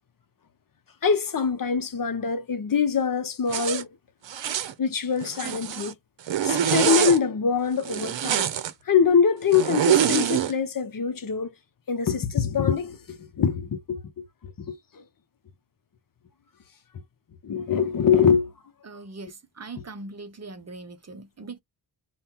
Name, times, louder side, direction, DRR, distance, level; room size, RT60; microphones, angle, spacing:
voice 1, 1.0-3.9 4.8-6.0 6.4-8.5 8.9-11.5 11.9-15.0 17.4-18.5 19.8-19.9, left 6 dB, 45° left, 0.7 m, -24 dB
Zipper (clothing), 3.5-3.8 4.3-4.7 5.2-5.9 6.3-7.2 7.8-8.7 9.5-10.5, right 9 dB, 70° right, 0.7 m, -24 dB
voice 2, 18.8-21.6, right 3 dB, 35° right, 0.6 m, -41 dB
5.3 x 2.2 x 2.9 m
wide cardioid pair, 115°, 46 cm